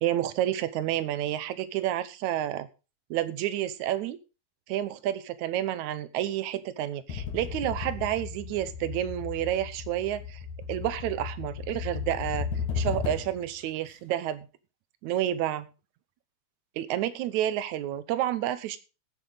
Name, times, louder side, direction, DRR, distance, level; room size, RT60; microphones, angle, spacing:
voice 1, 0.0-2.7 3.1-4.2 4.7-10.4 10.7-12.5 12.8-14.5 15.0-15.7 16.8-18.8, right 12 dB, 80° right, 14 dB, 2.2 m, -30 dB
sound 1, 7.1-13.5, left 6 dB, 90° left, 3.9 m, -35 dB
16.5 x 7.4 x 4.0 m, 0.31 s
omnidirectional pair, 3.3 m